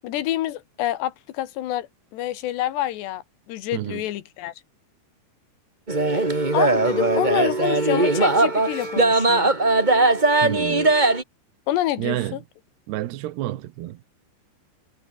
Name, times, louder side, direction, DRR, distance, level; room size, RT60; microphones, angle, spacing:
voice 1, 0.0-3.2 3.5-4.5 6.1-9.5 11.7-12.4, left 13 dB, 85° left, 3.6 m, -28 dB
sound 1, 5.9-11.2, right 2 dB, 15° right, 1.5 m, -19 dB
voice 2, 10.4-10.9 12.0-12.4 12.9-14.0, right 15 dB, 80° right, 3.1 m, -29 dB
omnidirectional pair, 4.8 m